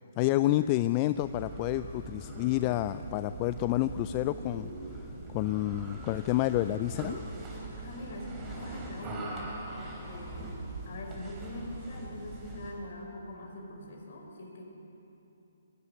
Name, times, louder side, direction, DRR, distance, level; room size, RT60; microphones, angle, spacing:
voice 1, 0.2-4.7 5.3-7.2, left 15 dB, 25° left, 12 dB, 0.4 m, -29 dB
sound 1, 1.1-12.8, right 2 dB, 15° right, 3.9 m, -41 dB
voice 2, 7.8-9.4 9.7-10.6 10.8-14.7, left 1 dB, 55° left, 1 dB, 5.4 m, -43 dB
20.0 x 15.0 x 9.8 m, 3.0 s
hypercardioid pair, 155°, 0 cm